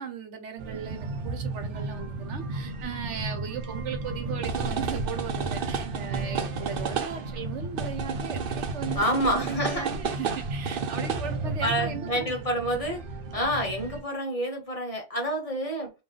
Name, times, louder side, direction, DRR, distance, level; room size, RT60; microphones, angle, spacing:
voice 1, 0.0-12.3, right 6 dB, 75° right, 1.1 m, -37 dB
sound 1, 0.6-14.0, right 4 dB, 60° right, 0.7 m, -32 dB
voice 2, 8.9-9.9 11.6-13.0 13.3-15.9, right 1 dB, 35° left, 1.0 m, -28 dB
3.8 x 2.6 x 3.2 m
omnidirectional pair, 1.2 m